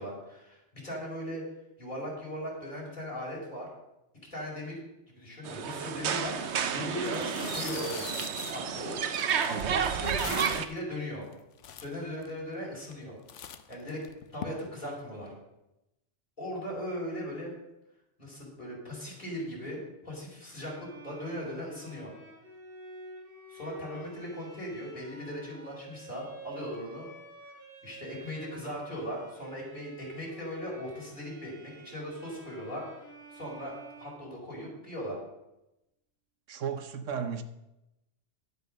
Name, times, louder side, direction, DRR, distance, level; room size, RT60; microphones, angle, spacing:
voice 1, 0.0-1.5 1.8-3.7 4.3-4.8 5.1-6.4 6.7-8.1 8.5-11.3 11.8-13.2 13.7-14.0 14.3-15.3 16.4-17.5 18.2-22.1 23.5-27.1 27.8-35.2, equal, 40° left, -4 dB, 5.1 m, -38 dB
sound 1, 5.4-10.6, right 7 dB, 65° right, 1.1 m, -31 dB
sound 2, 6.4-6.6 7.0-10.8 11.3-11.4 11.6-12.3 12.8-13.0 13.3-14.5, left 9 dB, 75° left, 1.1 m, -42 dB
voice 2, 9.5-9.8 36.5-37.4, right 7 dB, 85° right, 10 dB, 1.3 m, -34 dB
Bowed string instrument, 20.5-34.8, right 2 dB, 25° left, 5.6 m, -50 dB
11.0 x 8.5 x 6.5 m, 0.92 s
omnidirectional pair, 1.2 m